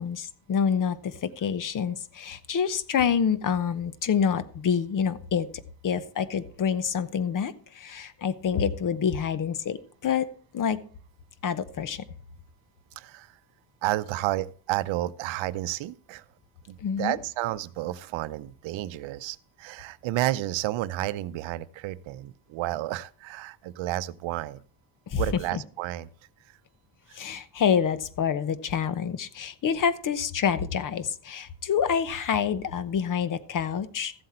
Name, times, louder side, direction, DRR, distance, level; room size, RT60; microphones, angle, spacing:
voice 1, 0.0-5.5 5.8-10.3 10.5-10.8 11.4-12.0 16.8-17.2 25.1-25.2 27.1-34.1, left 7 dB, 40° left, 0.9 m, -27 dB
voice 2, 13.0-13.4 13.8-16.2 16.7-24.6 25.1-26.1 27.1-27.2, right 15 dB, 75° right, 0.7 m, -31 dB
14.0 x 7.8 x 4.3 m
cardioid pair, 130°, 47 cm